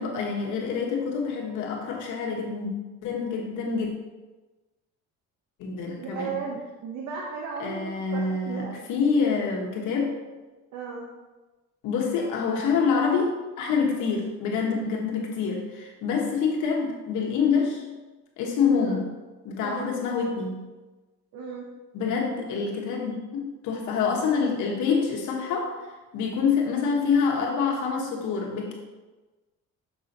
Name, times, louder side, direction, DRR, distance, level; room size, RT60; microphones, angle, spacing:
voice 1, 0.0-2.7 3.0-3.9 5.6-6.4 7.6-10.1 11.8-13.3 13.6-17.8 18.4-19.1 19.4-20.7 21.9-25.7 26.1-28.7, left 5 dB, 80° left, 0 dB, 1.3 m, -26 dB
voice 2, 6.0-8.8 10.7-11.1 18.8-19.0 19.6-20.0 21.3-21.7, right 5 dB, 65° right, -1 dB, 0.9 m, -35 dB
6.5 x 5.5 x 2.8 m, 1.2 s
cardioid pair, 100°, 30 cm